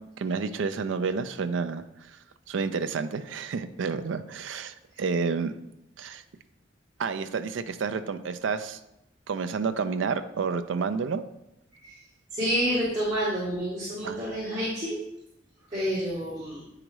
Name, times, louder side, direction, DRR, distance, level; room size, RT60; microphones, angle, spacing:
voice 1, 0.2-1.8 2.5-5.5 6.0-6.2 7.0-8.8 9.3-11.2 14.0-14.2, right 5 dB, 85° right, 10 dB, 0.4 m, -30 dB
voice 2, 12.3-15.0 15.7-16.6, equal, 25° right, -11 dB, 2.1 m, -28 dB
8.9 x 4.9 x 3.0 m, 0.87 s
head